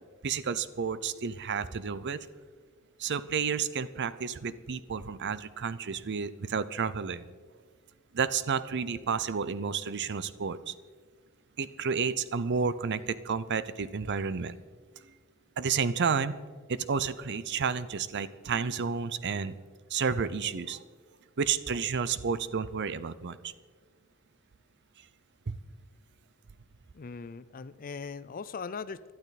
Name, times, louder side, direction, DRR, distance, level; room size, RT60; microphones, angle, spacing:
voice 1, 0.2-2.3 3.0-7.3 8.1-10.7 11.6-14.6 15.6-16.3 16.7-19.5 19.9-20.8 21.4-23.5 25.5-25.6, right 6 dB, 50° right, 15 dB, 0.6 m, -31 dB
voice 2, 26.9-29.0, left 5 dB, 40° left, 16 dB, 0.5 m, -39 dB
21.0 x 12.0 x 4.1 m, 1.6 s
head